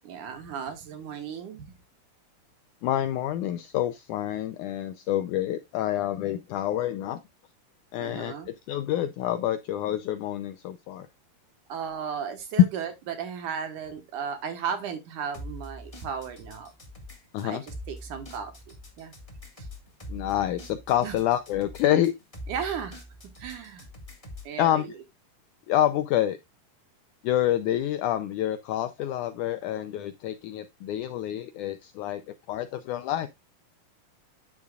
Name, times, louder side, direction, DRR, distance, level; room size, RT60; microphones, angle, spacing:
voice 1, 0.0-1.7 8.0-8.5 11.7-16.7 17.4-18.5 19.0-19.1 19.6-19.7 21.0-21.2 22.5-23.0 23.4-23.9 24.4-24.9, right 7 dB, 65° right, 2.7 m, -35 dB
voice 2, 2.8-7.2 7.9-11.1 17.3-17.6 20.1-22.1 24.6-24.9 25.7-26.4 27.2-33.3, left 12 dB, 80° left, 1.8 m, -28 dB
sound 1, 15.3-24.6, equal, 30° left, 0.6 m, -43 dB
10.0 x 7.3 x 2.4 m
omnidirectional pair, 4.2 m